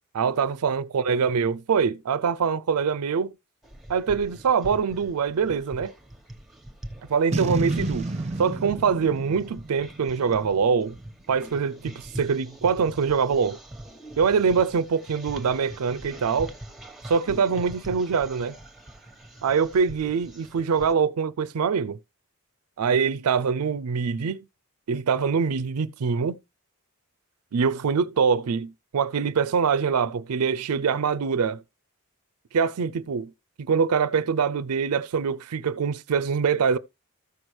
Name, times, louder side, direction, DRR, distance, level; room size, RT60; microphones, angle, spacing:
voice 1, 0.1-3.3 3.9-5.9 7.1-8.1 8.4-11.0 11.3-13.6 14.2-16.5 17.1-18.5 19.4-22.0 22.8-24.4 24.9-26.4 27.5-31.6 32.5-33.3 33.6-36.8, right 6 dB, 85° right, 0.4 m, -24 dB
sound 1, 3.6-20.9, right 1 dB, ahead, 1.1 m, -43 dB
Boom, 7.3-10.6, right 2 dB, 30° right, 0.6 m, -30 dB
14.0 x 6.1 x 3.2 m
head